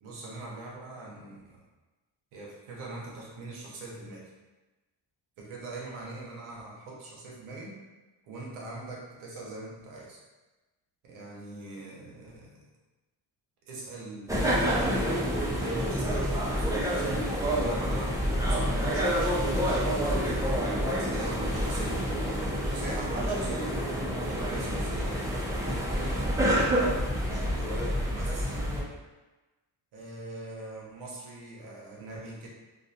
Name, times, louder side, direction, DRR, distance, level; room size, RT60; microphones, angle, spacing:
voice 1, 0.0-1.6 2.3-4.3 5.4-7.8 8.3-10.2 11.0-12.7 13.7-22.1 22.6-27.0 27.3-28.6 29.9-32.5, right 2 dB, 85° right, -3 dB, 0.8 m, -42 dB
sound 1, 14.3-28.8, equal, 5° right, 0.4 m, -28 dB
2.5 x 2.3 x 2.6 m, 1.1 s
cardioid pair, 80°, 48 cm